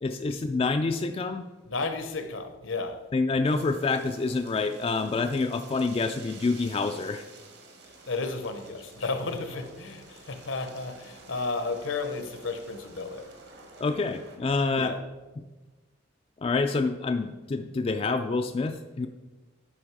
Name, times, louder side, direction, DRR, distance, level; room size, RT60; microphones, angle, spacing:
voice 1, 0.0-1.4 3.1-7.2 13.8-15.0 15.4-15.5 16.4-19.1, left 3 dB, 30° left, 0.3 m, -27 dB
voice 2, 1.7-3.0 8.1-13.3 14.8-15.0, left 3 dB, 80° left, 1.0 m, -33 dB
sound 1, 3.4-14.4, right 3 dB, 55° right, 1.3 m, -50 dB
8.7 x 5.5 x 4.7 m
head